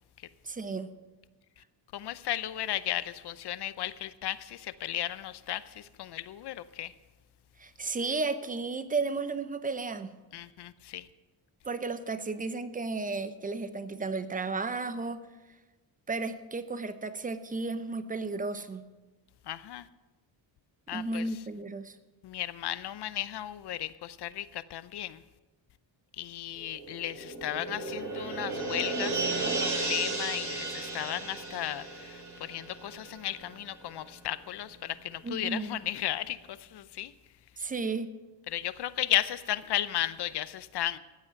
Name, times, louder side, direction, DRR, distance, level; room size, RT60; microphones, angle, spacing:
voice 1, 0.4-0.9 7.6-10.1 11.7-15.2 16.1-18.8 20.9-22.0 35.2-35.8 37.6-38.1, right 3 dB, 20° right, 12 dB, 0.7 m, -33 dB
voice 2, 1.9-6.9 10.3-11.1 19.5-19.9 20.9-21.3 22.2-25.2 26.2-37.1 38.5-41.0, left 12 dB, 60° left, 16 dB, 0.7 m, -35 dB
sound 1, 26.6-33.6 33.9-34.0, right 3 dB, 40° right, 3.5 m, -34 dB
15.0 x 8.4 x 5.9 m, 1.2 s
cardioid pair, 125°, 45 cm